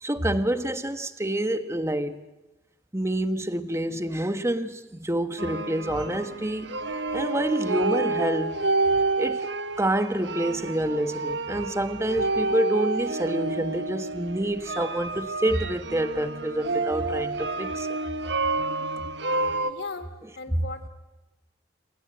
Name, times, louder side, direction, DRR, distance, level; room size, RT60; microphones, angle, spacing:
voice 1, 0.0-2.2 2.9-6.7 7.1-8.6 9.2-9.5 9.8-17.9, right 1 dB, 15° right, 1.4 m, -27 dB
sound 1, 5.4-19.7, right 3 dB, 70° right, 1.5 m, -29 dB
voice 2, 19.6-20.9, left 3 dB, 65° left, 2.8 m, -38 dB
28.0 x 26.0 x 7.9 m
head